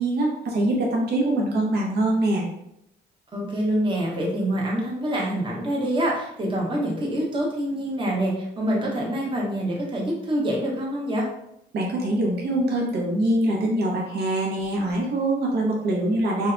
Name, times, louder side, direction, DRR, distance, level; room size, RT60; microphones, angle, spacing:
voice 1, 0.0-2.5 11.7-16.5, right 1 dB, 55° right, -2 dB, 0.6 m, -23 dB
voice 2, 3.3-11.3, right 1 dB, 25° right, -3 dB, 0.8 m, -26 dB
2.7 x 2.1 x 2.4 m, 0.80 s
cardioid pair, 90°, 20 cm